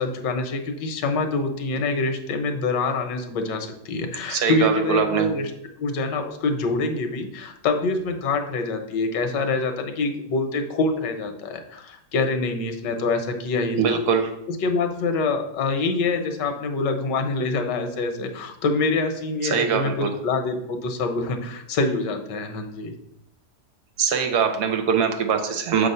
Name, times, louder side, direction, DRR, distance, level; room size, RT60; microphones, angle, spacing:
voice 1, 0.0-5.5 5.8-14.0 14.5-22.9, left 3 dB, 90° left, 6 dB, 1.5 m, -25 dB
voice 2, 4.3-5.3 13.8-14.3 19.4-20.1 24.0-25.9, right 6 dB, 70° right, 5 dB, 1.3 m, -22 dB
7.0 x 3.3 x 5.4 m, 0.81 s
omnidirectional pair, 1.8 m